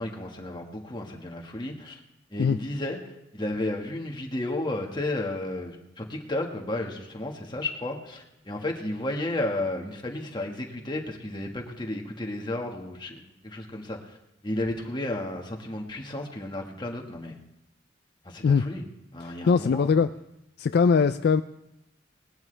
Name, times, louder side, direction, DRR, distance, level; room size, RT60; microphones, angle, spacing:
voice 1, 0.0-2.0 2.3-14.2 14.4-17.3 18.2-18.9 19.1-19.9, left 1 dB, 25° left, 1 dB, 1.6 m, -33 dB
voice 2, 19.5-20.1 20.6-21.4, left 5 dB, 60° left, 10 dB, 0.3 m, -21 dB
19.0 x 12.0 x 3.3 m, 0.86 s
head